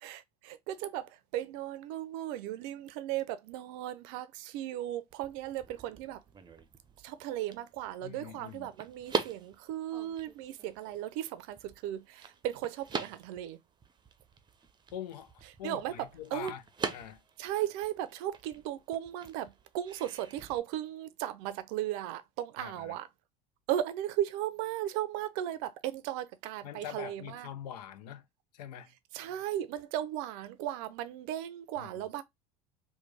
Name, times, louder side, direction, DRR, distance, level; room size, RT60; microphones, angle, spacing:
voice 1, 0.0-6.2 7.0-13.6 15.6-16.5 17.4-23.1 23.7-27.5 29.1-32.2, right 12 dB, 65° right, 0.6 m, -36 dB
sound 1, 5.1-20.6, right 5 dB, 20° right, 0.6 m, -43 dB
voice 2, 8.0-8.7 14.9-16.6 16.9-17.2 22.6-23.0 26.6-28.2 28.5-28.9 31.8-32.0, left 10 dB, 80° left, 0.6 m, -44 dB
3.1 x 2.2 x 3.3 m
hypercardioid pair, 80°, 21 cm